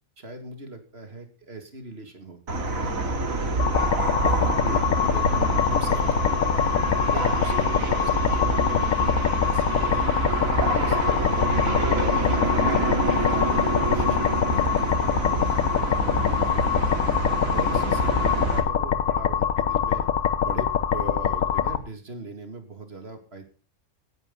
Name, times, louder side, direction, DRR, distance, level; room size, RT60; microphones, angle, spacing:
voice 1, 0.2-3.1 4.2-4.8 5.1-6.8 7.1-10.0 10.4-12.8 13.1-16.6 17.0-17.2 17.5-20.1 20.4-23.4, right 2 dB, 45° right, 6 dB, 2.6 m, -39 dB
sound 1, 2.5-18.6, right 2 dB, 75° right, 2.6 m, -26 dB
sound 2, 3.6-21.8, left 8 dB, 75° left, 1.4 m, -24 dB
17.0 x 9.9 x 4.0 m, 0.38 s
omnidirectional pair, 1.4 m